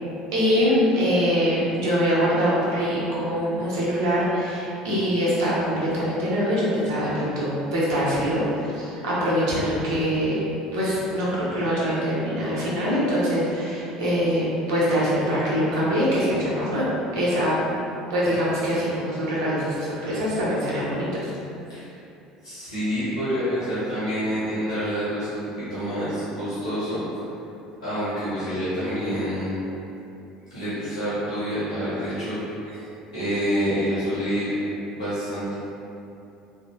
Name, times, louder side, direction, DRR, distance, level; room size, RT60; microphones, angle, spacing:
voice 1, 0.3-10.4 10.7-16.9 17.1-17.5 18.1-21.3, equal, 70° right, -8 dB, 0.9 m, -23 dB
voice 2, 22.4-27.0 27.8-29.6 30.5-32.4 33.1-34.5 34.9-35.5, equal, 85° left, -13 dB, 1.0 m, -27 dB
3.4 x 2.0 x 3.0 m, 2.8 s
hypercardioid pair, 65°, 3 cm